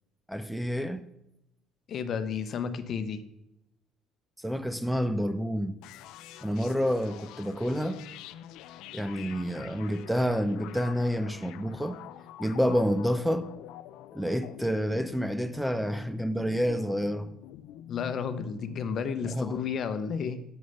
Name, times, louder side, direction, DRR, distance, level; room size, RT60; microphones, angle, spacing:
voice 1, 0.3-1.0 4.4-5.8 6.4-8.0 8.9-12.0 12.4-13.5 14.1-17.3 19.3-19.6, equal, ahead, 0.5 m, -29 dB
voice 2, 1.9-3.2 17.9-20.4, left 6 dB, 50° left, 0.8 m, -32 dB
sound 1, 5.8-19.4, left 12 dB, 80° left, 0.4 m, -46 dB
7.2 x 6.3 x 5.5 m
cardioid pair, 105°, 0 cm